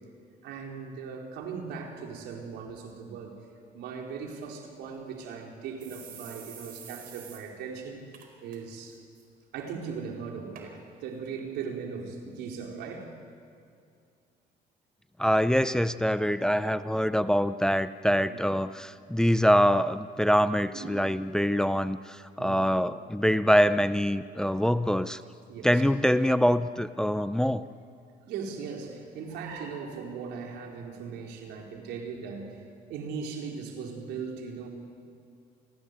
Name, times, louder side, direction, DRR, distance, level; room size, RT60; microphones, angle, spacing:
voice 1, 0.4-3.3 3.7-9.0 9.5-13.1 18.3-18.4 20.7-21.1 22.4-22.6 25.5-25.8 28.3-32.6 32.9-34.7, right 5 dB, 85° right, 1 dB, 4.3 m, -39 dB
sound 1, 4.9-5.0 5.3-5.4 5.8-7.4 7.7-7.8 8.1-8.6 8.9-9.2 9.9-10.0 10.5-10.7 11.4-11.5, right 8 dB, 60° right, 4.6 m, -47 dB
voice 2, 15.2-25.2 25.6-27.6, equal, 5° left, 13 dB, 0.6 m, -24 dB
28.5 x 20.0 x 8.2 m, 2.4 s
cardioid pair, 110°, 17 cm